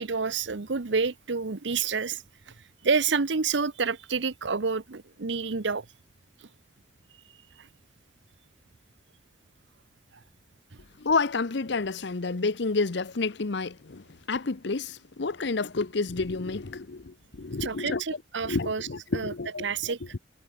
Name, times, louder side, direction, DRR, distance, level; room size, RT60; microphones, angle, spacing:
voice 1, 0.0-2.2 2.8-5.8 7.6-7.7 17.6-18.9 19.1-19.3 19.6-20.0, right 5 dB, 70° right, 0.9 m, -28 dB
voice 2, 11.0-18.0 18.4-19.9, left 3 dB, 65° left, 0.8 m, -30 dB
head